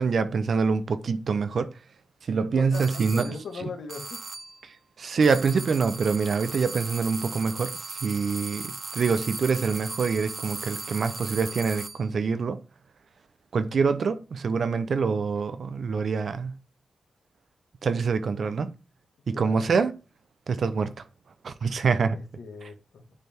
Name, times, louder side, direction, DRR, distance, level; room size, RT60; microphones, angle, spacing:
voice 1, 0.0-1.7 2.3-3.3 5.0-12.6 13.5-16.6 17.8-18.7 19.3-19.9 20.5-20.9 21.4-22.2, right 5 dB, 60° right, 0.8 m, -25 dB
voice 2, 2.5-4.2 19.3-19.7 22.1-23.0, left 4 dB, 75° left, 1.8 m, -40 dB
sound 1, 2.7-3.4 3.9-4.6 5.2-12.1, right 3 dB, 35° right, 0.6 m, -37 dB
9.8 x 3.5 x 4.4 m
cardioid pair, 75°, 0 cm